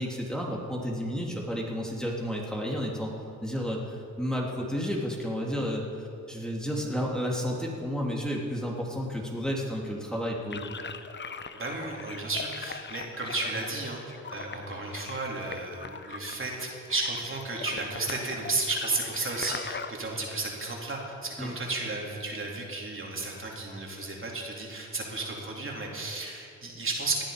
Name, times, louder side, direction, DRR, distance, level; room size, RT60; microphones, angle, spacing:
voice 1, 0.0-3.1 3.4-5.8 6.3-10.6 21.4-21.6, equal, ahead, -3 dB, 2.8 m, -31 dB
sound 1, 10.5-19.9, left 5 dB, 35° left, 0.9 m, -41 dB
voice 2, 11.5-14.0 14.3-27.2, right 2 dB, 40° right, -2 dB, 3.6 m, -33 dB
19.0 x 10.0 x 5.2 m, 2.5 s
supercardioid pair, 60°, 33 cm